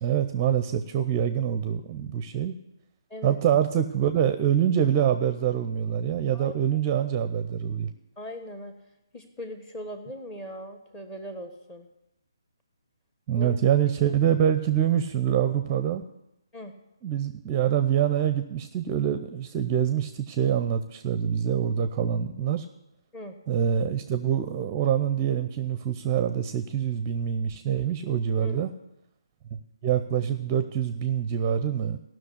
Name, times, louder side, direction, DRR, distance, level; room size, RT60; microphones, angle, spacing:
voice 1, 0.0-2.5 3.2-7.9 13.3-16.0 17.0-22.7 23.5-28.7 29.5-32.0, right 9 dB, 25° right, 10 dB, 0.6 m, -25 dB
voice 2, 6.3-6.8 8.2-8.7 9.1-11.9 13.4-13.6 16.5-16.7 23.1-23.4 28.4-28.6, equal, 15° left, 6 dB, 1.3 m, -40 dB
15.0 x 6.2 x 8.2 m, 0.87 s
figure-of-eight pair, 145°, 3 cm